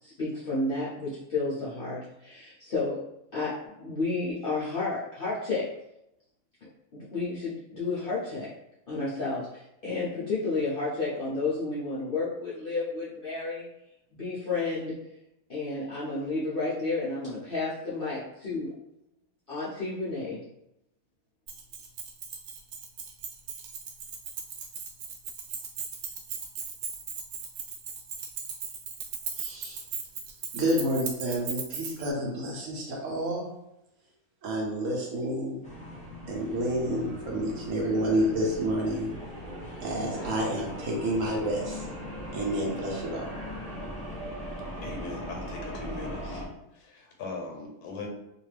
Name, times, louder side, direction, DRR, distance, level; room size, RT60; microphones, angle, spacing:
voice 1, 0.0-3.0 3.3-5.7 6.6-8.5 8.9-13.7 14.1-15.0 15.5-18.7 19.5-20.4, left 3 dB, 55° left, -9 dB, 0.6 m, -31 dB
Keys jangling, 21.5-32.1, right 6 dB, 90° right, 1.1 m, -37 dB
voice 2, 29.4-29.8 30.5-33.5 34.4-35.7 36.3-39.1 39.8-41.9 42.3-43.2, right 1 dB, 65° right, -2 dB, 1.0 m, -29 dB
sound 1, 35.6-46.4, equal, 10° left, 0.5 m, -39 dB
voice 3, 44.8-46.5 46.7-48.1, left 3 dB, 85° left, 2 dB, 1.1 m, -39 dB
2.5 x 2.3 x 3.2 m, 0.85 s
omnidirectional pair, 1.6 m